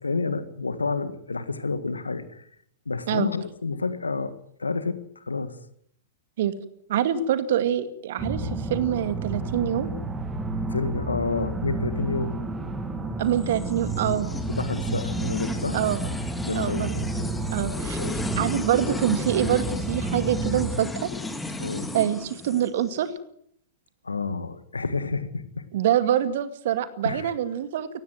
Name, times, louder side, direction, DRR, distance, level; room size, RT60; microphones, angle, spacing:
voice 1, 0.0-2.5 2.9-5.6 10.7-12.4 14.5-15.8 16.4-17.3 17.8-18.2 21.6-21.9 24.0-25.6 27.0-27.3, left 4 dB, 85° left, 12 dB, 1.8 m, -29 dB
voice 2, 6.9-9.9 13.2-14.3 15.7-16.0 16.5-17.1 17.5-18.0 18.4-21.1 21.9-23.1 25.7-27.9, right 10 dB, 60° right, 11 dB, 2.2 m, -25 dB
sound 1, 8.2-20.8, right 2 dB, 15° right, 2.4 m, -31 dB
sound 2, 13.3-23.0, left 2 dB, 10° left, 2.2 m, -35 dB
19.0 x 15.5 x 9.4 m, 0.68 s
figure-of-eight pair, 105°, 0 cm